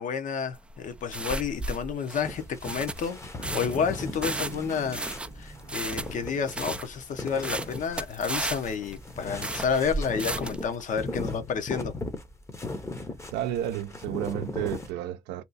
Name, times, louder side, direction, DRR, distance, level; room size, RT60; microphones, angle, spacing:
voice 1, 0.0-11.9, left 6 dB, 50° left, 0.8 m, -30 dB
sound 1, 0.5-10.7, right 2 dB, 5° right, 0.3 m, -34 dB
sound 2, 2.2-14.9, left 2 dB, 15° left, 0.8 m, -38 dB
sound 3, 4.0-7.3 7.7-7.8, right 3 dB, 25° right, 0.8 m, -45 dB
voice 2, 13.3-15.4, right 12 dB, 80° right, 0.5 m, -31 dB
2.9 x 2.3 x 3.9 m
cardioid pair, 110°, 17 cm